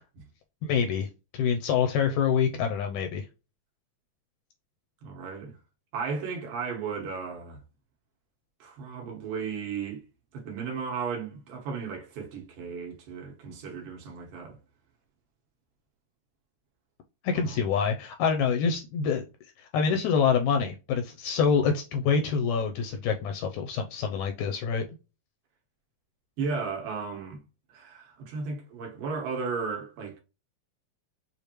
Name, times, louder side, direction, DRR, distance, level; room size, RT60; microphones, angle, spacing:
voice 1, 0.6-1.1 1.3-3.3 17.2-19.2 19.6-24.8, left 6 dB, 80° left, 1.7 m, -26 dB
voice 2, 5.0-5.6 5.9-7.6 8.6-10.0 10.3-14.6 17.3-17.7 26.4-27.4 27.7-30.2, right 5 dB, 85° right, 3.0 m, -35 dB
6.6 x 2.5 x 2.9 m
omnidirectional pair, 3.8 m